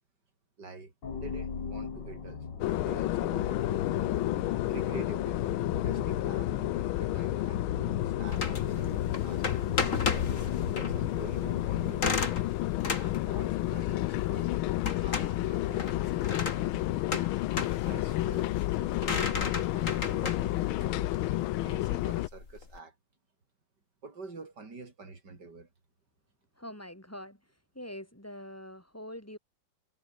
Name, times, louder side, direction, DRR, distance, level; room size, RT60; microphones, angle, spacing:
voice 1, 0.6-3.9 4.7-10.2 10.7-12.3 12.9-14.5 14.9-17.2 17.9-22.9 24.0-25.7, right 3 dB, 55° right, 5.1 m, -47 dB
sound 1, 1.0-12.9, left 5 dB, 60° left, 3.1 m, -39 dB
sound 2, 2.6-22.3, left 16 dB, 90° left, 1.5 m, -31 dB
sound 3, 8.3-22.8, left 4 dB, 40° left, 2.8 m, -36 dB
voice 2, 26.6-27.4 27.7-29.4, left 1 dB, 5° left, 6.2 m, -44 dB
omnidirectional pair, 2.2 m